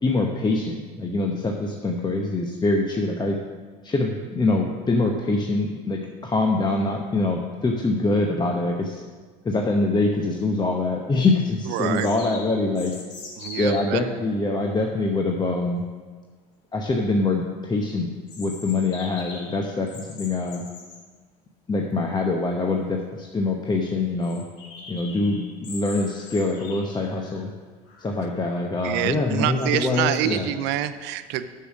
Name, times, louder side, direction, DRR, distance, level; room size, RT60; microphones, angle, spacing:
voice 1, 0.0-3.4 3.8-9.0 9.4-12.9 13.6-15.8 16.7-18.1 18.4-20.6 21.7-24.4 24.9-27.5 28.0-30.5, left 2 dB, 20° left, 2 dB, 0.9 m, -24 dB
sound 1, 10.7-10.8 11.7-13.9 18.3-21.0 22.7-22.8 23.0-23.1 23.5-23.6 24.2-27.4 27.9-28.4 28.9-30.4, left 3 dB, 60° left, 2.2 m, -41 dB
voice 2, 11.7-12.1 13.4-14.0 14.5-14.6 28.8-31.5, right 12 dB, 60° right, 12 dB, 0.7 m, -26 dB
6.8 x 6.7 x 7.4 m, 1.4 s
hypercardioid pair, 80°, 20 cm